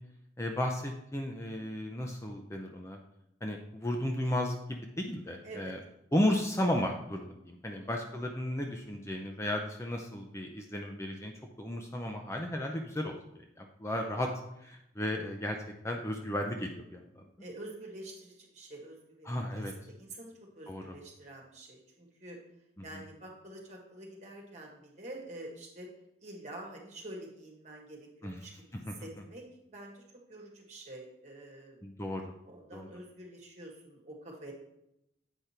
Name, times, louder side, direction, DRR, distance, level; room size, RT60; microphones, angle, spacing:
voice 1, 0.4-3.0 3.4-5.8 6.1-11.3 11.6-14.3 14.6-15.6 15.8-17.3 19.2-19.7 20.7-21.0 22.8-23.0 28.2-28.4 28.7-28.9 31.8-32.2 32.7-32.9, left 1 dB, 15° left, 2 dB, 0.6 m, -34 dB
voice 2, 5.4-5.7 7.8-8.1 17.4-22.4 22.8-25.9 26.2-28.5 29.0-29.4 29.7-30.0 30.3-31.8 32.4-34.5, right 1 dB, 40° right, -1 dB, 1.7 m, -47 dB
8.2 x 5.2 x 4.4 m, 0.83 s
head